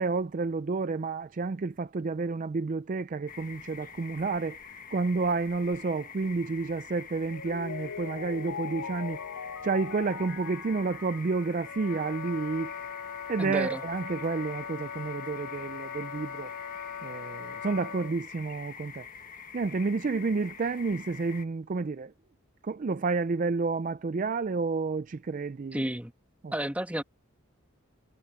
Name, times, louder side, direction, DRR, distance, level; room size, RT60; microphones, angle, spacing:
voice 1, 0.0-4.6 4.9-9.2 9.6-12.7 13.3-16.5 17.0-19.1 19.5-22.1 22.6-25.8 26.4-26.5, right 4 dB, 40° right, 0.4 m, -30 dB
sound 1, 3.3-21.5, left 7 dB, 40° left, 1.4 m, -46 dB
Mallet percussion, 7.2-12.2, left 6 dB, 70° left, 0.6 m, -40 dB
Wind instrument woodwind instrument, 11.6-18.2, left 7 dB, 90° left, 2.8 m, -40 dB
voice 2, 13.4-13.8 25.7-26.1 26.5-27.0, right 1 dB, 5° right, 1.3 m, -31 dB
head